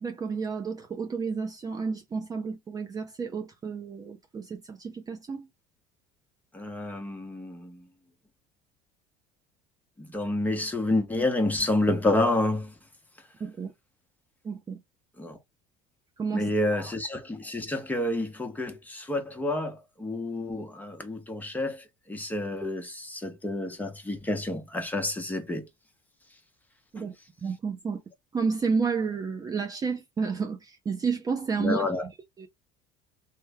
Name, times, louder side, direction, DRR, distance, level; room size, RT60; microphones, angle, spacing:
voice 1, 0.0-5.5 13.4-13.7 14.4-14.8 16.2-16.9 26.9-27.1 27.4-28.0 28.3-32.1 32.4-32.5, right 5 dB, 20° right, 0.5 m, -31 dB
voice 2, 6.5-7.8 10.0-12.7 15.2-15.4 16.3-25.7 27.0-27.1 31.6-32.1, left 2 dB, 10° left, 0.9 m, -29 dB
3.1 x 2.1 x 3.4 m
cardioid pair, 125°, 17 cm